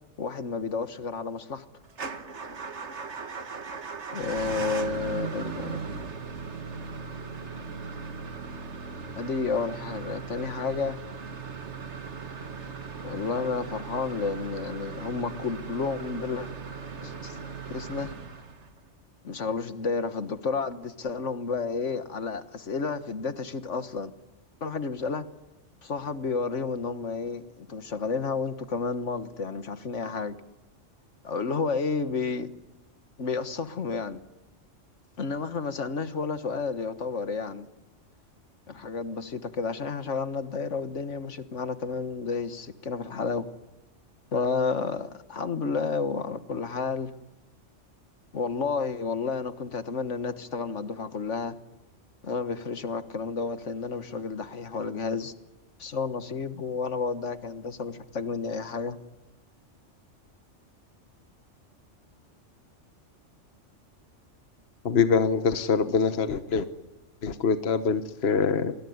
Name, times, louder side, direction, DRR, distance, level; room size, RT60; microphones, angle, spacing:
voice 1, 0.2-1.6 4.1-5.8 9.2-11.0 13.0-16.5 17.0-17.4 17.7-18.1 19.2-24.1 24.6-25.3 25.8-30.3 31.2-32.5 33.2-34.2 35.2-37.7 38.7-43.4 44.3-47.1 48.3-51.5 52.2-55.3 55.8-59.0, left 4 dB, 75° left, 11 dB, 1.8 m, -31 dB
Motor vehicle (road) / Engine starting / Idling, 1.9-18.9, right 5 dB, 65° right, 2.0 m, -38 dB
voice 2, 64.8-66.7 67.2-68.8, left 5 dB, 55° left, 10 dB, 1.4 m, -24 dB
29.0 x 21.0 x 9.6 m, 1.0 s
omnidirectional pair, 1.3 m